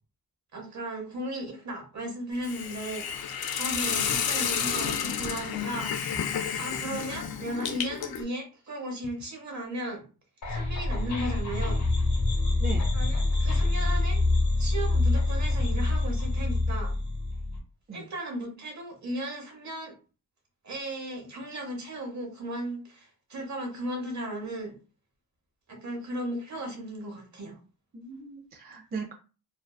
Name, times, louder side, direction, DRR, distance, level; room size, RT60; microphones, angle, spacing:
voice 1, 0.5-5.9 6.6-10.0 10.5-11.8 12.9-14.2 14.6-17.0 17.9-20.0 20.6-24.8 25.7-27.6, right 1 dB, 50° right, 0.9 m, -36 dB
Hiss, 2.4-8.2, left 7 dB, 90° left, 0.5 m, -31 dB
sound 1, 10.4-17.6, left 2 dB, 55° left, 0.8 m, -26 dB
voice 2, 12.6-12.9 17.9-18.1 27.9-29.1, right 3 dB, 30° right, 0.4 m, -38 dB
2.5 x 2.2 x 2.2 m
wide cardioid pair, 110°, 35 cm